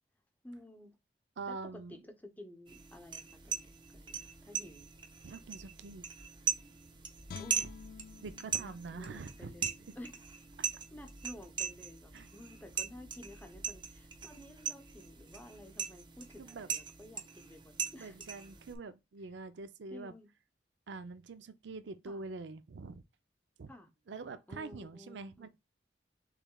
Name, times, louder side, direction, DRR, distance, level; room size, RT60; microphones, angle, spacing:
voice 1, 0.4-1.0 1.5-4.9 7.4-7.8 8.6-10.2 10.9-18.2 19.9-20.3 22.0-22.3 23.7-23.9 24.5-25.5, left 1 dB, 10° left, 0.8 m, -52 dB
voice 2, 1.4-2.0 5.2-6.1 7.6-7.7 8.2-9.7 10.6-10.7 12.1-12.3 16.4-16.7 18.0-20.1 20.9-23.0 23.6-23.7 24.1-25.5, right 3 dB, 75° right, 0.5 m, -45 dB
sound 1, 2.7-18.8, right 7 dB, 25° right, 0.6 m, -40 dB
Guitar, 7.3-10.4 10.8-11.0, left 6 dB, 55° left, 0.3 m, -51 dB
6.6 x 3.2 x 2.3 m
head